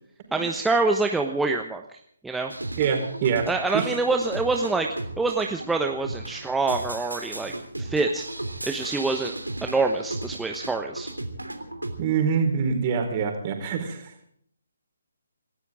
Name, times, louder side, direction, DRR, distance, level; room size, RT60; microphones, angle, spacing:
voice 1, 0.3-2.0 2.2-2.5 3.5-4.9 5.2-7.5 7.8-8.3 8.7-11.1, right 3 dB, 5° right, 3 dB, 1.1 m, -26 dB
sound 1, 2.5-12.0, right 1 dB, 90° right, 3.2 m, -35 dB
voice 2, 2.8-3.5 3.7-3.9 12.0-14.3, right 6 dB, 30° right, 4 dB, 4.6 m, -25 dB
27.0 x 14.5 x 3.7 m, 0.65 s
figure-of-eight pair, 140°, 0 cm